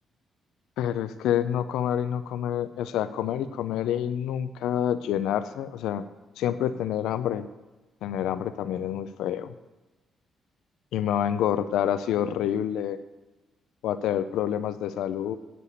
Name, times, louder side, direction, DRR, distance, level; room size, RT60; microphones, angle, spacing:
voice 1, 0.8-6.0 6.4-7.5 8.0-9.5 10.9-13.0 13.8-15.4, left 10 dB, 90° left, 11 dB, 0.5 m, -27 dB
8.5 x 6.8 x 8.0 m, 1.2 s
cardioid pair, 95°, 0 cm